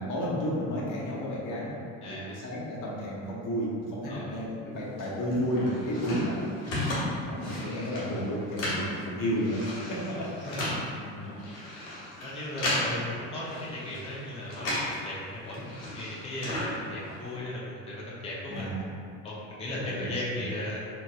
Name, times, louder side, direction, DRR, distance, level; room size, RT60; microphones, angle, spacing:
voice 1, 0.0-1.8 2.0-6.4 7.2-9.6 9.9-10.7 11.1-11.3 18.5-18.9 19.9-20.5, equal, 50° left, -6 dB, 0.9 m, -32 dB
voice 2, 2.0-2.4 4.1-4.3 6.7-7.0 10.1-10.7 12.2-18.7 19.2-20.8, left 1 dB, 15° left, -7 dB, 0.6 m, -37 dB
sound from opening and closing a book, 5.0-15.0 15.3-17.3, left 1 dB, 75° left, 1.2 m, -35 dB
3.1 x 2.8 x 2.3 m, 2.4 s
hypercardioid pair, 70°, 41 cm